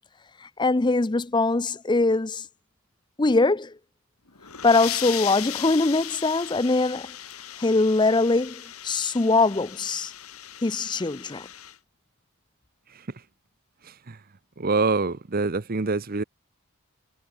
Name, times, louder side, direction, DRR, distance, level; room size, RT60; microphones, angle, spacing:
voice 1, 0.4-2.4 3.2-3.7 4.6-7.1 7.6-10.1 10.6-11.5, left 3 dB, 20° left, 0.5 m, -22 dB
sound 1, 4.3-11.8, left 12 dB, 85° left, 4.6 m, -37 dB
voice 2, 14.6-16.2, right 3 dB, 40° right, 0.8 m, -25 dB
head